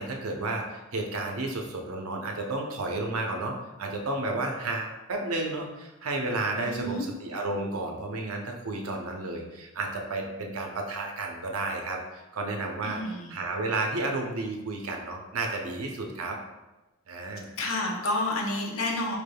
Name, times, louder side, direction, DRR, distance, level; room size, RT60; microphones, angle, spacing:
voice 1, 0.0-13.0 13.3-16.4 17.1-17.5, right 2 dB, 90° right, 2 dB, 0.7 m, -32 dB
voice 2, 6.6-7.1 12.8-13.3 17.6-19.2, left 2 dB, 70° left, 0 dB, 0.6 m, -30 dB
4.7 x 3.4 x 2.2 m, 1.0 s
head